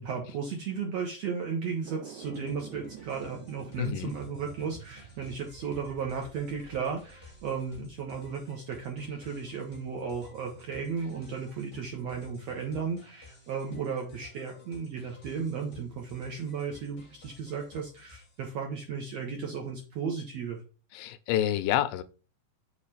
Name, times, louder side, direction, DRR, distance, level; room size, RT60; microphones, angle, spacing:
voice 1, 0.0-20.6, right 6 dB, 75° right, 0 dB, 1.6 m, -35 dB
sound 1, 1.8-7.9, right 10 dB, 90° right, 1.7 m, -49 dB
sound 2, 2.2-18.5, left 3 dB, 50° left, 0.8 m, -54 dB
voice 2, 3.8-4.1 20.9-22.0, left 12 dB, 85° left, 11 dB, 2.4 m, -28 dB
6.4 x 3.2 x 5.6 m, 0.35 s
omnidirectional pair, 4.1 m